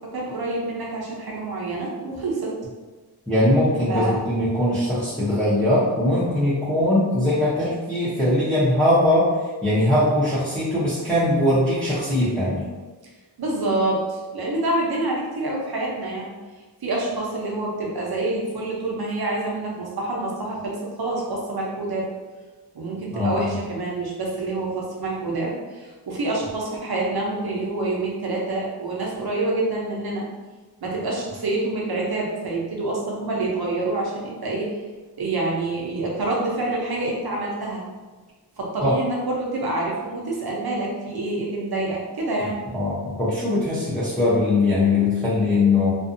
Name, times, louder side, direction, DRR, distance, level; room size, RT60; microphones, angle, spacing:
voice 1, 0.1-2.5 3.9-4.2 13.4-16.3 16.8-22.1 22.7-30.2 30.8-34.7 35.2-37.8 38.6-42.6, right 2 dB, 65° right, -3 dB, 0.7 m, -27 dB
voice 2, 3.3-9.3 9.6-12.7 23.1-23.6 38.8-38.9 42.7-45.9, left 1 dB, ahead, -12 dB, 0.8 m, -21 dB
2.5 x 2.3 x 2.6 m, 1.3 s
wide cardioid pair, 70°, 41 cm